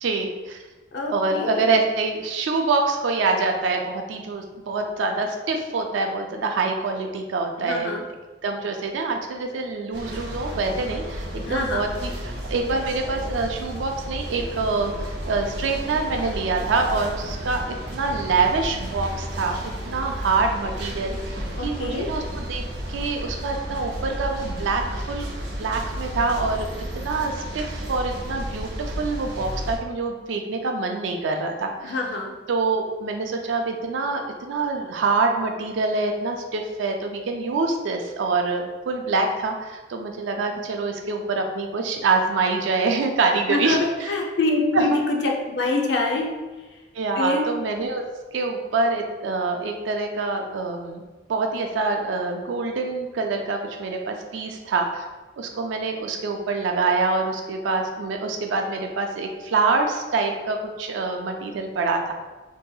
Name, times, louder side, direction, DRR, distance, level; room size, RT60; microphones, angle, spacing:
voice 1, 0.0-0.6 1.1-8.0 8.4-17.6 17.9-22.6 22.9-25.3 25.5-26.7 26.9-32.0 32.5-44.1 44.7-45.0 46.9-48.0 48.3-51.0 51.3-55.1 55.4-62.1, right 3 dB, 85° right, 3 dB, 0.4 m, -25 dB
voice 2, 0.9-1.7 7.6-8.0 11.5-11.8 21.6-22.1 31.8-32.3 43.5-46.3 47.2-47.5, left 2 dB, 70° left, 0 dB, 0.5 m, -25 dB
sound 1, 9.9-29.8, equal, 60° right, 0.8 m, -32 dB
3.9 x 2.7 x 2.3 m, 1.2 s
head